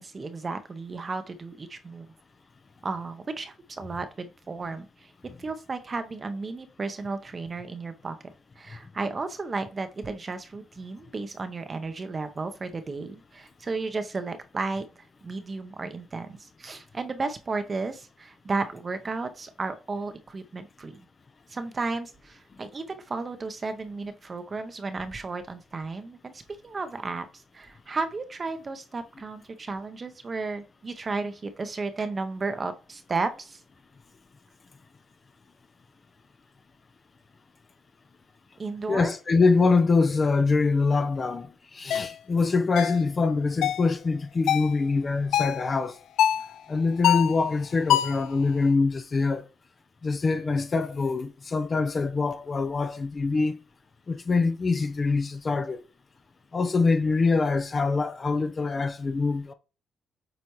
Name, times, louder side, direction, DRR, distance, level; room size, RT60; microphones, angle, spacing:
voice 1, 0.0-2.1 2.8-5.1 5.4-21.0 21.5-33.6 38.6-39.1 45.6-45.7, right 3 dB, 35° right, 0.9 m, -34 dB
voice 2, 38.9-46.0 46.7-49.5 50.0-53.5 54.1-55.8 56.5-59.5, left 4 dB, 35° left, 0.8 m, -24 dB
sound 1, 41.9-42.1 42.8-43.0 43.6-43.9 44.5-44.7 45.3-45.6 46.2-46.5 47.0-47.4 47.9-48.3, left 11 dB, 80° left, 0.4 m, -23 dB
8.0 x 4.1 x 3.1 m
cardioid pair, 90°, 0 cm